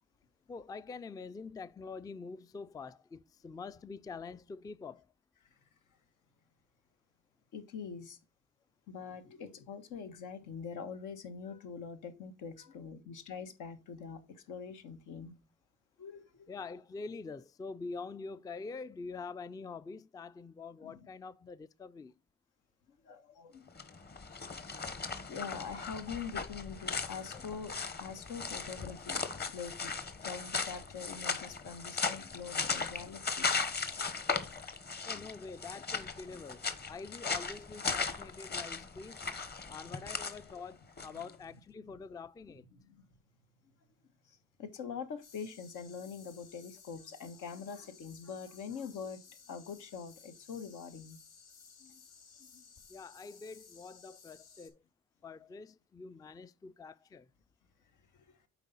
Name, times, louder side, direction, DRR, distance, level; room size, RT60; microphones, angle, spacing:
voice 1, 0.5-5.0 16.5-22.2 35.1-39.2 39.7-42.6 52.9-54.8 55.2-57.3, left 4 dB, 15° left, 0.3 m, -45 dB
voice 2, 7.5-8.2 8.9-15.4 16.0-16.5 20.8-21.1 23.0-23.7 24.5-24.8 25.3-29.9 30.2-33.6 35.2-35.3 39.7-39.9 41.1-41.3 42.5-43.1 44.2-49.2 49.5-51.2 51.8-52.0 52.5-52.6 58.1-58.3, left 6 dB, 85° left, 1.3 m, -44 dB
sound 1, 23.7-41.3, left 4 dB, 35° left, 1.1 m, -37 dB
sound 2, 45.2-54.7, left 6 dB, 60° left, 2.3 m, -58 dB
8.2 x 4.7 x 4.0 m
cardioid pair, 90°, 30 cm